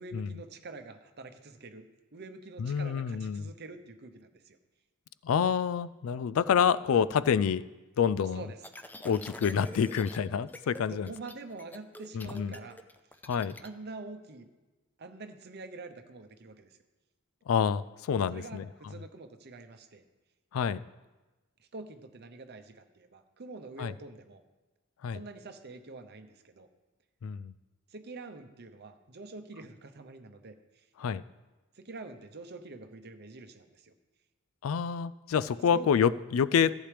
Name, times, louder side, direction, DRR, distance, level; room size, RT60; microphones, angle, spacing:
voice 1, 0.0-4.6 8.3-8.6 10.9-12.8 13.6-14.5 15.0-16.8 18.3-20.0 21.6-24.4 25.1-26.7 27.9-30.8 31.8-33.9 35.7-36.1, right 3 dB, 55° right, 8 dB, 0.8 m, -46 dB
voice 2, 2.6-3.5 5.2-7.6 8.0-8.4 9.0-11.1 12.1-12.6 13.3-13.5 17.5-18.7 20.5-20.8 23.8-23.9 25.0-25.2 27.2-27.5 31.0-31.2 34.6-36.7, left 7 dB, 90° left, 17 dB, 0.4 m, -27 dB
sound 1, 8.6-10.2 10.5-10.8 11.1-13.7, left 1 dB, 10° left, 0.4 m, -46 dB
14.5 x 8.3 x 3.4 m, 1.2 s
head